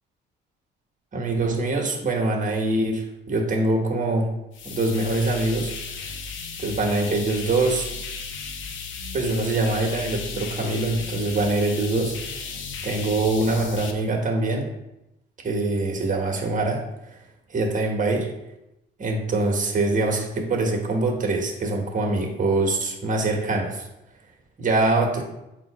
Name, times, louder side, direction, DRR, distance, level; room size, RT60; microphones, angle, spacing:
voice 1, 1.1-4.3 4.6-5.7 6.6-7.9 9.1-12.4 12.8-14.7 15.4-16.8 17.5-18.3 19.0-23.9 24.6-25.2, right 2 dB, 40° right, 1 dB, 1.5 m, -24 dB
sound 1, 4.5-13.9, left 5 dB, 75° left, 0.8 m, -35 dB
7.5 x 2.8 x 4.8 m, 0.90 s
cardioid pair, 90°, 20 cm